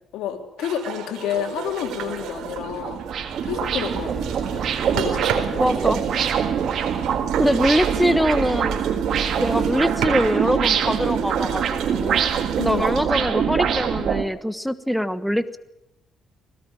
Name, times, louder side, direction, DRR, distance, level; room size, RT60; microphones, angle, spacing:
voice 1, 0.1-3.0 3.4-5.8 12.6-12.9, left 9 dB, 90° left, 4 dB, 3.4 m, -30 dB
sound 1, 0.6-14.1, right 7 dB, 85° right, 4.1 m, -34 dB
sound 2, 1.3-1.4 1.9-14.2, right 8 dB, 65° right, 2.3 m, -24 dB
sound 3, 3.4-9.7, right 6 dB, 50° right, 2.1 m, -38 dB
voice 2, 5.6-6.0 7.4-8.9 9.4-12.3 12.6-15.6, equal, ahead, 11 dB, 1.2 m, -23 dB
21.0 x 18.5 x 9.0 m, 0.85 s
cardioid pair, 90°, 0 cm